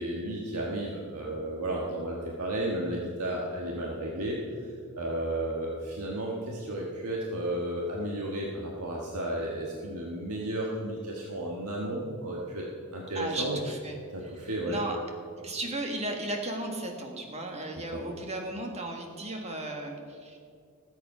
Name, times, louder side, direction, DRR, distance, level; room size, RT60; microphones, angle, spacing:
voice 1, 0.0-4.7 5.0-12.6 12.9-13.6 14.1-14.8 17.9-18.0, right 1 dB, 85° right, -3 dB, 1.5 m, -33 dB
voice 2, 13.1-14.0 14.4-15.0 15.4-20.4, right 1 dB, 30° right, 2 dB, 1.6 m, -35 dB
18.5 x 8.1 x 4.9 m, 2.3 s
head